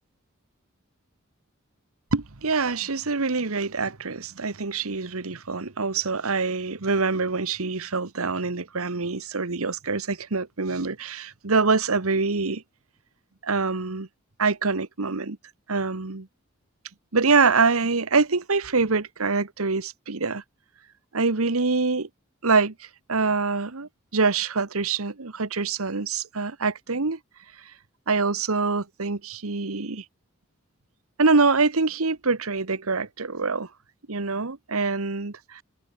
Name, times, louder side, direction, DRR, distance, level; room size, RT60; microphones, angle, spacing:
voice 1, 2.1-12.6 13.4-14.1 14.4-15.4 15.7-16.3 17.1-20.4 21.1-22.1 22.4-22.7 23.1-27.2 28.1-30.0 31.2-33.7 34.1-35.6, right 4 dB, 80° right, 1.3 m, -25 dB
head